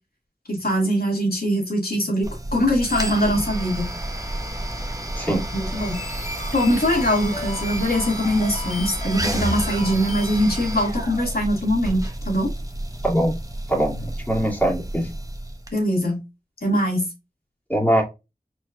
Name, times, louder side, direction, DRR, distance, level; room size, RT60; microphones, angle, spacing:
voice 1, 0.5-3.9 5.5-6.0 6.5-12.0 12.3-12.5 15.7-16.2 16.6-17.1, equal, 70° left, 2.0 m, -22 dB
sound 1, 2.2-15.7, right 1 dB, 20° right, 0.9 m, -30 dB
voice 2, 5.1-5.4 13.0-13.3 13.7-15.1 17.7-18.0, right 1 dB, 10° left, 2.1 m, -22 dB
sound 2, 5.6-10.7, left 3 dB, 45° left, 1.1 m, -36 dB
4.3 x 4.3 x 2.4 m
wide cardioid pair, 45°, 16 cm